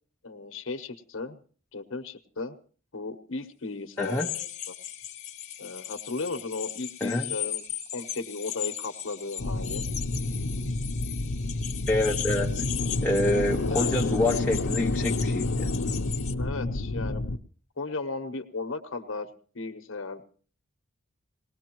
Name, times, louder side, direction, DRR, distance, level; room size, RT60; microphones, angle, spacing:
voice 1, 0.2-1.4 1.7-2.5 2.9-4.5 5.6-7.6 7.9-9.8 13.7-14.1 16.4-17.2 17.8-19.3 19.5-20.2, left 3 dB, 70° left, 7 dB, 1.0 m, -35 dB
sound 1, 4.0-16.3, left 11 dB, 30° left, 1.1 m, -37 dB
voice 2, 4.0-4.3 7.0-7.3 11.9-12.6 13.0-15.7, left 1 dB, 10° left, -1 dB, 0.8 m, -27 dB
sound 2, 9.4-17.4, left 2 dB, 90° left, 0.8 m, -29 dB
20.0 x 18.0 x 3.0 m, 0.41 s
head